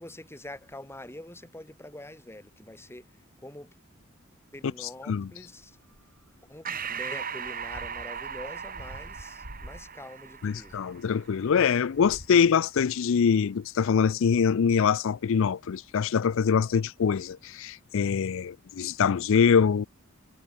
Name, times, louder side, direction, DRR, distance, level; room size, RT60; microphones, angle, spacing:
voice 1, 0.0-3.8 4.5-5.8 6.4-10.8, left 1 dB, 10° left, 6.6 m, -45 dB
sound 1, 5.6-6.3 6.8-7.0 7.4-12.3, equal, 85° right, 7.8 m, -48 dB
Breathing, 6.7-11.5, right 7 dB, 45° right, 2.5 m, -38 dB
voice 2, 10.4-19.9, left 6 dB, 65° left, 0.4 m, -24 dB
head